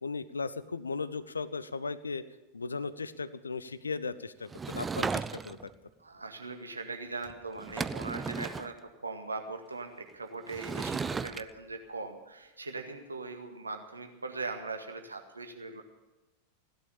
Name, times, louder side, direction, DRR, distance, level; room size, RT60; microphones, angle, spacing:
voice 1, 0.0-2.2 2.5-5.7, left 4 dB, 75° left, 15 dB, 0.7 m, -36 dB
Sliding door / Wood, 4.5-5.7 7.2-7.3 7.6-8.7 10.5-11.4, right 5 dB, 15° right, 0.5 m, -35 dB
voice 2, 6.0-8.7 9.0-15.8, right 3 dB, 80° right, 5 dB, 1.9 m, -40 dB
16.5 x 11.5 x 7.1 m, 1.1 s
figure-of-eight pair, 90°, 0 cm